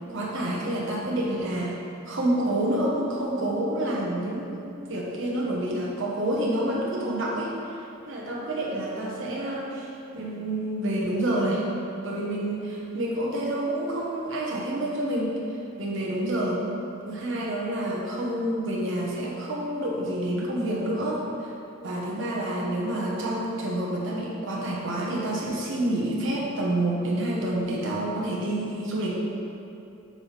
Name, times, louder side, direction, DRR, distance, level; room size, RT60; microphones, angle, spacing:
voice 1, 0.1-1.7 2.0-7.8 8.1-11.6 12.0-15.3 15.8-16.6 17.0-21.5 21.8-29.2, right 1 dB, 65° right, -3 dB, 1.3 m, -28 dB
8.0 x 3.5 x 5.8 m, 2.7 s
head